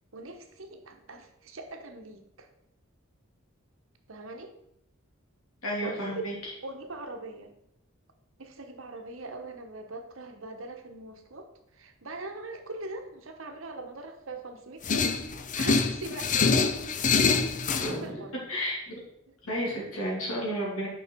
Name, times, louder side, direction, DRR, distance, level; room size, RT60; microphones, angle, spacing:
voice 1, 0.1-2.5 4.1-4.5 5.8-6.3 6.6-7.6 8.4-11.5 11.7-15.2 15.5-16.8 17.2-17.4 18.0-18.3 19.3-19.4, right 2 dB, 70° right, 5 dB, 1.1 m, -41 dB
voice 2, 5.6-6.5 17.8-18.2 18.5-19.0 19.4-20.9, equal, 85° left, -3 dB, 2.8 m, -32 dB
sound 1, 14.8-17.9, left 5 dB, 40° left, 0.5 m, -25 dB
6.4 x 5.5 x 4.5 m, 0.77 s
head